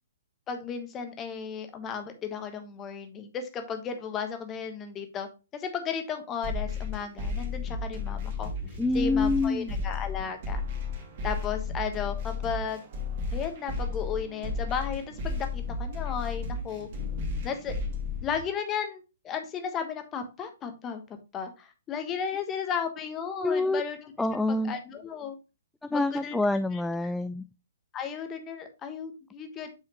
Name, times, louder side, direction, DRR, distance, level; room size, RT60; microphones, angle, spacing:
voice 1, 0.5-8.5 8.9-10.6 11.2-12.8 13.3-16.9 17.4-17.7 18.2-24.1 24.5-25.4 25.9-26.4 26.7-26.8 27.9-29.7, left 7 dB, 20° left, 1.2 m, -34 dB
sound 1, 6.4-18.4, left 3 dB, 45° right, 2.5 m, -33 dB
voice 2, 8.8-9.8 23.4-23.8 24.2-24.7 25.9-27.4, left 2 dB, 5° left, 0.3 m, -26 dB
7.7 x 5.7 x 3.0 m
figure-of-eight pair, 120°, 0 cm